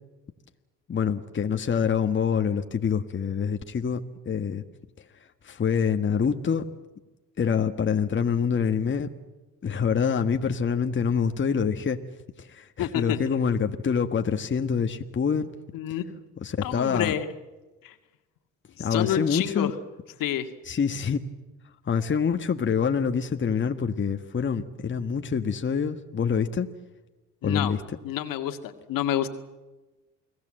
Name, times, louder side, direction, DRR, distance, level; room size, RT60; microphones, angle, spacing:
voice 1, 0.9-4.6 5.4-6.7 7.4-9.1 9.6-12.0 12.4-15.5 16.4-17.1 18.8-19.7 20.7-21.2 21.8-26.7 27.4-27.8, left 6 dB, 35° left, 7 dB, 1.5 m, -26 dB
voice 2, 12.8-13.2 15.7-16.0 16.6-17.3 17.8-17.9 18.8-19.7 20.2-20.5 27.4-27.7 28.0-29.3, left 11 dB, 65° left, 7 dB, 2.1 m, -28 dB
29.5 x 19.5 x 7.7 m, 1.1 s
hypercardioid pair, 65°, 35 cm